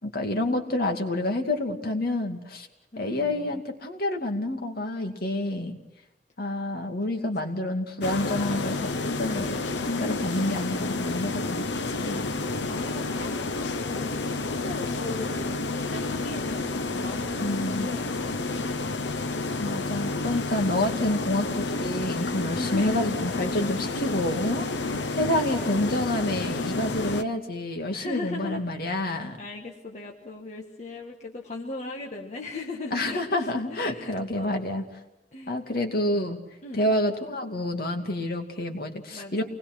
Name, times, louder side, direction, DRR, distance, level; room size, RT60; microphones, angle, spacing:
voice 1, 0.0-2.7 3.0-5.8 6.4-11.7 11.9-12.3 17.4-17.9 19.6-29.4 32.9-34.8 35.5-36.4 36.7-39.4, left 1 dB, 60° left, 4 dB, 2.5 m, -28 dB
voice 2, 2.9-3.6 7.4-7.5 9.3-9.8 12.3-19.0 22.5-23.0 24.7-26.1 27.9-34.6 35.3-35.6 36.1-36.8 39.1-39.4, left 2 dB, 40° left, 0 dB, 1.7 m, -39 dB
sound 1, 8.0-27.2, left 3 dB, 80° left, 0.9 m, -30 dB
28.0 x 20.5 x 6.2 m, 0.94 s
head